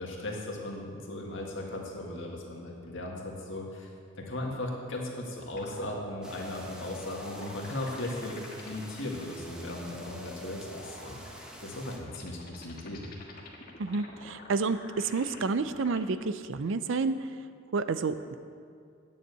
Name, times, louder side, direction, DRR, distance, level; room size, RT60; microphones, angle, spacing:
voice 1, 0.0-3.9 4.2-11.2 11.6-13.1, left 1 dB, 65° left, -1 dB, 1.9 m, -37 dB
sound 1, 5.6-16.2, left 2 dB, 50° left, 1.5 m, -47 dB
sound 2, 6.2-12.0, equal, 5° right, 1.1 m, -47 dB
voice 2, 13.8-17.2 17.7-18.4, right 4 dB, 65° right, 12 dB, 0.5 m, -30 dB
9.1 x 7.3 x 8.2 m, 2.2 s
head